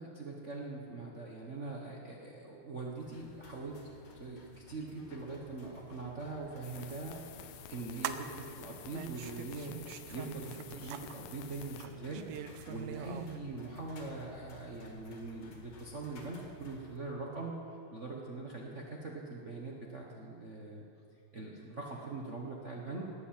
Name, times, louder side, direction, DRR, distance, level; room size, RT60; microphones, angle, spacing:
voice 1, 0.0-3.8 4.1-12.3 12.7-17.6 17.9-20.8 21.3-23.0, right 3 dB, 45° right, -2 dB, 0.9 m, -42 dB
sound 1, 3.0-17.0, left 1 dB, 65° left, 3.1 m, -55 dB
sound 2, 6.6-11.9, left 13 dB, 85° left, 2.1 m, -51 dB
sound 3, 6.9-13.4, right 9 dB, 85° right, 2.0 m, -44 dB
19.0 x 8.3 x 7.7 m, 2.5 s
omnidirectional pair, 3.5 m